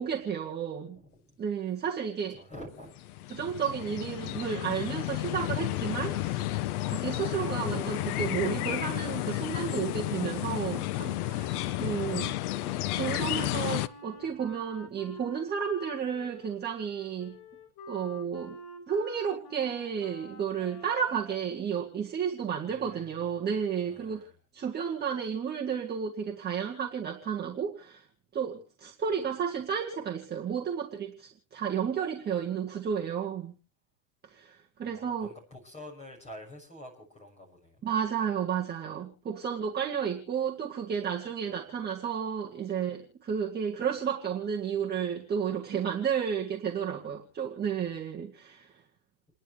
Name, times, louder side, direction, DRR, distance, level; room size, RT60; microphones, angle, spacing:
voice 1, 0.0-1.0 1.4-2.4 3.3-6.4 6.8-12.3 12.9-17.4 17.9-18.6 18.9-28.0 28.3-33.5 34.3-35.3 37.8-48.7, right 7 dB, 20° right, -1 dB, 1.8 m, -32 dB
voice 2, 1.0-1.4 2.3-3.1 14.2-14.3 22.7-23.1 23.4-23.5 23.8-24.3 34.9-37.8, left 1 dB, 15° left, 0 dB, 6.6 m, -48 dB
sound 1, 3.0-13.9, left 15 dB, 75° left, 0.9 m, -32 dB
Wind instrument woodwind instrument, 12.6-21.5, left 2 dB, 55° left, 5.3 m, -48 dB
29.5 x 11.0 x 3.3 m, 0.35 s
supercardioid pair, 145°, 45 cm